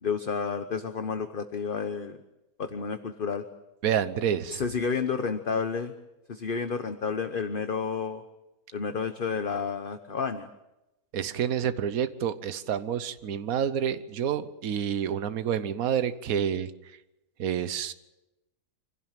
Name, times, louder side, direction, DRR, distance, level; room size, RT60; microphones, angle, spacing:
voice 1, 0.0-2.2 2.6-3.4 4.5-5.9 6.3-8.2 8.7-10.5, left 5 dB, 40° left, 8 dB, 1.1 m, -30 dB
voice 2, 3.8-4.6 11.1-16.7 17.4-17.9, right 8 dB, 65° right, 12 dB, 1.4 m, -28 dB
25.5 x 16.5 x 9.1 m, 0.96 s
omnidirectional pair, 1.6 m